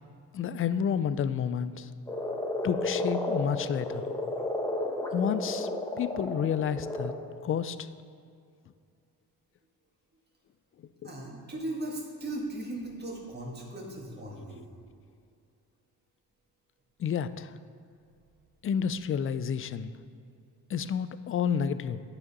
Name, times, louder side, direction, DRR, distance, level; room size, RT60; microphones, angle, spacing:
voice 1, 0.3-1.9 2.6-4.1 5.1-5.7 6.0-7.1 7.4-7.9 11.0-11.1 17.0-17.6 18.6-19.9 20.7-22.0, left 7 dB, 35° left, 13 dB, 0.4 m, -30 dB
Frog, 2.1-7.2, left 1 dB, 10° left, 0.9 m, -32 dB
voice 2, 11.0-14.7, right 1 dB, 25° right, -2 dB, 1.8 m, -37 dB
9.6 x 4.9 x 4.2 m, 2.3 s
supercardioid pair, 70°, 40 cm